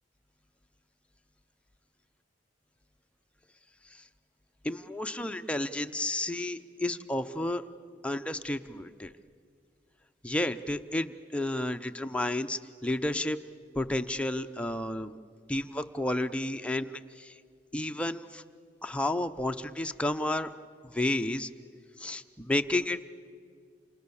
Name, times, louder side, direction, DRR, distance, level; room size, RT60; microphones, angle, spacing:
voice 1, 4.6-7.6 8.0-9.1 10.2-13.4 13.7-15.2 15.5-17.3 17.7-18.4 18.8-20.5 20.9-21.5 22.0-23.0, left 1 dB, 5° left, 7 dB, 0.7 m, -31 dB
29.5 x 27.5 x 7.1 m, 2.2 s
head